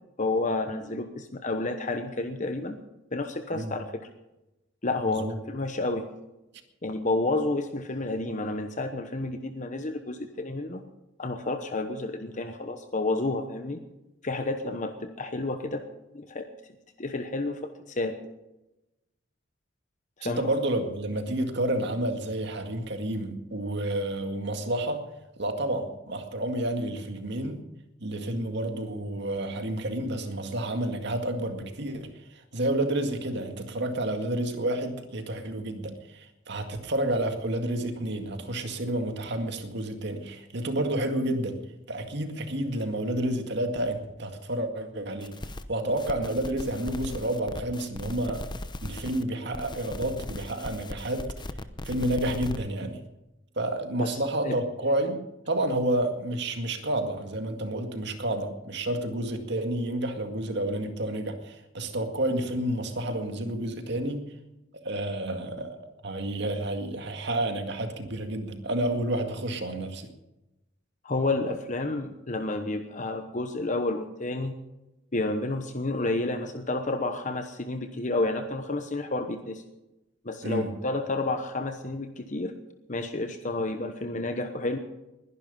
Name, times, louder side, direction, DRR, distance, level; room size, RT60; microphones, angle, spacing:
voice 1, 0.2-2.8 3.1-4.0 4.8-6.0 6.8-10.8 11.2-13.8 14.2-15.8 16.1-16.5 17.0-18.1 20.2-20.5 54.0-54.6 71.0-74.5 75.1-79.6 80.2-82.5 82.9-84.8, left 2 dB, 40° left, 7 dB, 1.1 m, -30 dB
voice 2, 20.2-25.0 25.4-27.6 28.0-41.6 41.9-45.3 45.7-48.4 48.8-51.3 51.9-53.0 53.6-55.2 55.5-64.3 64.8-65.8 66.0-70.1 80.4-80.7, right 1 dB, 65° right, 6 dB, 2.1 m, -30 dB
sound 1, 45.2-45.6 46.0-49.2 49.5-52.6, left 1 dB, 25° left, 0.8 m, -38 dB
21.5 x 11.0 x 5.4 m, 0.97 s
head